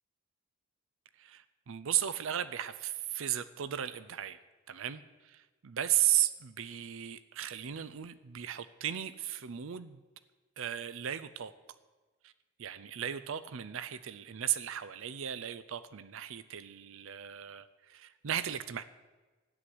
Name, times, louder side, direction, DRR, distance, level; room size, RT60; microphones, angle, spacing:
voice 1, 1.2-4.4 4.7-10.0 10.6-11.5 12.2-12.3 12.6-18.8, right 11 dB, 70° right, 15 dB, 0.5 m, -35 dB
13.0 x 10.0 x 7.7 m, 1.3 s
head